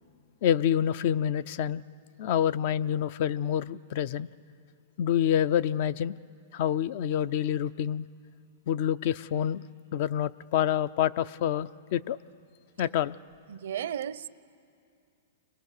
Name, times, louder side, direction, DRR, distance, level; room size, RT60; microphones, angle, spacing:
voice 1, 0.4-1.8 2.2-4.3 5.0-6.1 6.5-8.1 8.7-9.6 9.9-12.2 12.8-13.2, left 9 dB, 55° left, 0.5 m, -27 dB
voice 2, 13.5-14.3, right 9 dB, 70° right, 0.6 m, -34 dB
30.0 x 22.5 x 6.7 m
hypercardioid pair, 125°, 0 cm